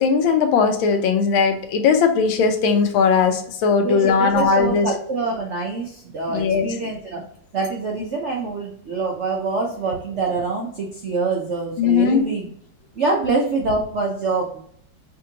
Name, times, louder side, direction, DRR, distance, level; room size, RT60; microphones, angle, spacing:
voice 1, 0.0-4.9 6.3-6.7 11.8-12.3, left 5 dB, 90° left, 6 dB, 1.4 m, -18 dB
voice 2, 3.8-7.2 7.5-12.5 13.0-14.6, right 3 dB, 85° right, 0 dB, 0.6 m, -25 dB
5.3 x 2.6 x 2.8 m, 0.64 s
omnidirectional pair, 2.1 m